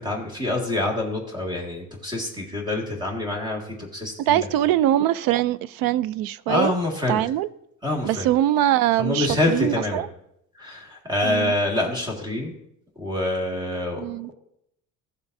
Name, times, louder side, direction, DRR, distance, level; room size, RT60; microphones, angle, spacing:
voice 1, 0.0-4.4 6.5-7.2 7.8-8.3 9.0-10.0 10.6-12.5 13.0-14.1, left 2 dB, 10° right, 1.9 m, -26 dB
voice 2, 4.3-6.7 7.1-7.5 8.0-10.1 11.2-11.5 14.0-14.3, right 13 dB, 80° right, 0.5 m, -22 dB
15.5 x 7.2 x 2.7 m
cardioid pair, 155°, 34 cm